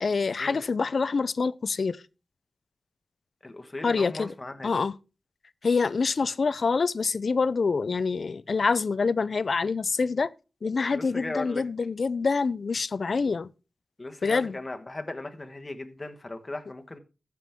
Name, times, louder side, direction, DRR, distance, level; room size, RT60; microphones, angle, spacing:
voice 1, 0.0-2.0 3.8-4.3 4.6-4.9 5.6-10.3 10.6-13.5 14.2-14.6, left 4 dB, 60° left, 0.4 m, -26 dB
voice 2, 3.4-4.7 10.9-11.6 14.0-17.0, left 2 dB, 25° left, 1.3 m, -37 dB
14.5 x 6.0 x 3.5 m
wide cardioid pair, 85°, 0 cm